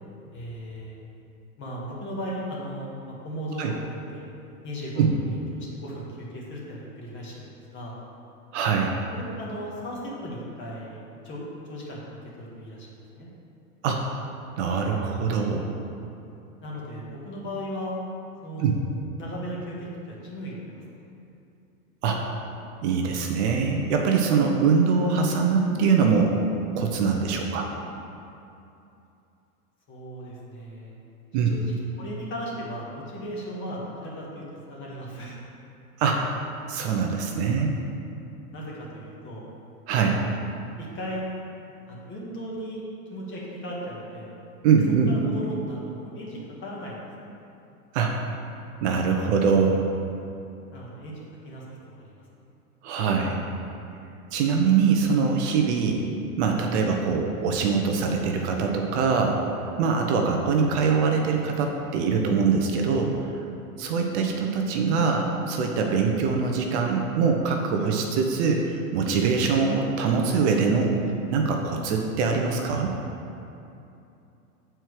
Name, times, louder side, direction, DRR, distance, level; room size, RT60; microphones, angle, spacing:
voice 1, 0.3-1.0 1.6-3.8 4.1-4.3 4.6-8.0 9.1-13.3 16.6-17.9 18.4-18.7 19.2-20.8 29.9-30.9 31.5-34.4 34.7-35.4 38.5-39.5 40.0-40.3 40.8-41.3 41.9-42.8 43.1-44.3 45.1-47.0 50.7-52.1 60.3-60.4, equal, 25° left, -5 dB, 1.7 m, -37 dB
voice 2, 8.5-8.9 13.8-14.0 14.6-15.7 18.6-18.8 22.0-22.2 22.8-26.4 26.8-27.7 31.3-31.6 36.0-36.2 36.7-37.7 39.9-40.2 44.6-45.1 47.9-48.2 48.8-49.8 52.8-53.4 54.3-56.0 56.4-59.4 59.8-63.1 63.8-71.0 71.3-72.9, right 5 dB, 50° right, 2 dB, 0.8 m, -23 dB
7.8 x 4.5 x 4.8 m, 2.7 s
hypercardioid pair, 120°, 45 cm